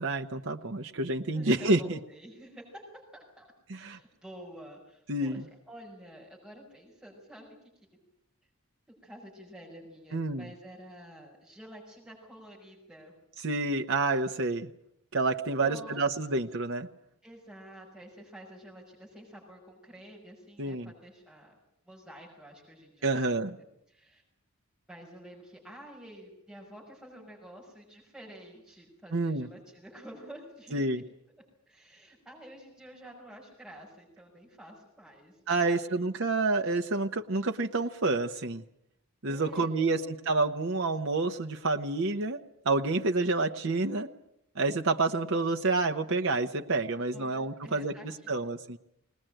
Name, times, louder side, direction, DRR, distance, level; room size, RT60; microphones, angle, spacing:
voice 1, 0.0-2.0 3.7-4.0 5.1-5.4 10.1-10.5 13.4-14.7 15.1-16.9 20.6-20.9 23.0-23.6 29.1-29.5 30.7-31.0 35.5-38.6 39.2-44.1 44.6-47.9 48.3-48.8, right 3 dB, 60° right, 4 dB, 1.0 m, -28 dB
voice 2, 1.3-7.6 9.0-13.1 15.6-16.0 17.2-21.5 21.9-24.2 24.9-31.0 31.7-36.1 39.3-40.1 46.9-48.5, right 1 dB, 5° right, -4 dB, 5.9 m, -50 dB
20.5 x 20.0 x 9.0 m, 0.77 s
head